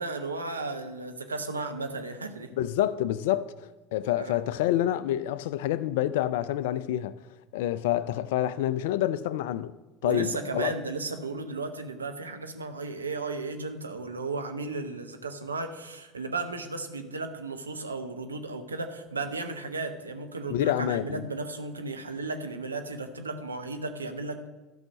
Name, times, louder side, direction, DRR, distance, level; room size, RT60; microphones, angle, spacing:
voice 1, 0.0-2.5 4.2-4.4 10.0-24.5, right 3 dB, 85° right, 1.0 m, -34 dB
voice 2, 2.6-7.2 7.5-9.7 10.0-10.7 20.5-21.2, left 12 dB, 65° left, 0.4 m, -28 dB
13.0 x 5.7 x 6.3 m
figure-of-eight pair, 70°, 0 cm